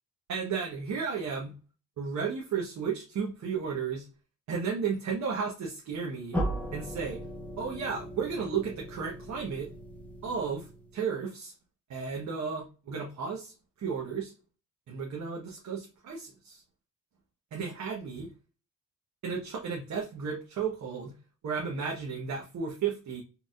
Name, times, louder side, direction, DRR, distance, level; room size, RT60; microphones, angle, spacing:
voice 1, 0.3-1.5 2.0-4.1 4.5-6.4 6.7-7.2 7.6-9.7 10.2-10.7 10.9-11.5 11.9-14.3 14.9-16.6 17.5-18.3 19.2-21.1 21.4-23.2, right 6 dB, 50° right, -2 dB, 1.0 m, -33 dB
sound 1, 6.3-11.1, right 1 dB, 5° left, 0.7 m, -37 dB
4.2 x 3.4 x 2.4 m, 0.34 s
cardioid pair, 135°, 35 cm